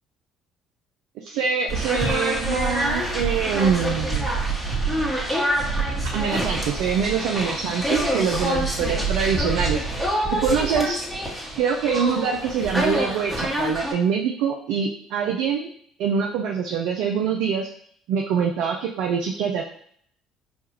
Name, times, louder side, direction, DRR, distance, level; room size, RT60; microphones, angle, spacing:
voice 1, 1.2-4.3 6.1-9.8 10.3-11.0 11.6-15.7 16.0-17.7 18.1-19.7, right 6 dB, 65° right, 1 dB, 0.3 m, -24 dB
sound 1, 1.7-13.9, right 1 dB, 5° right, 1.1 m, -26 dB
4.3 x 2.3 x 2.9 m, 0.63 s
hypercardioid pair, 55°, 0 cm